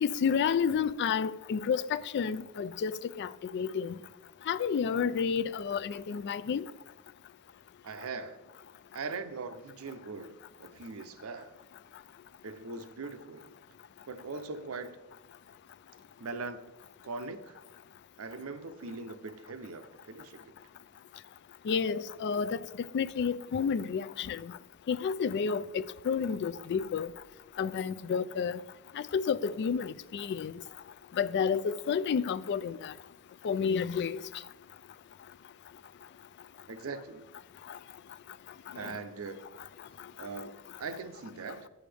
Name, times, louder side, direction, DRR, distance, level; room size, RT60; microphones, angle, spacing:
voice 1, 0.0-4.0 4.5-6.6 21.7-22.6 22.9-24.5 24.9-27.1 27.6-28.6 29.0-30.5 31.2-32.9 33.4-34.2 38.8-38.9, left 6 dB, 55° left, 0.3 m, -30 dB
voice 2, 7.8-8.4 8.9-11.5 12.4-13.6 14.1-15.0 16.2-16.7 17.0-17.6 18.2-20.5 36.7-37.3 38.7-39.5 40.2-41.7, right 4 dB, 70° right, 0.6 m, -41 dB
9.2 x 7.8 x 3.4 m
head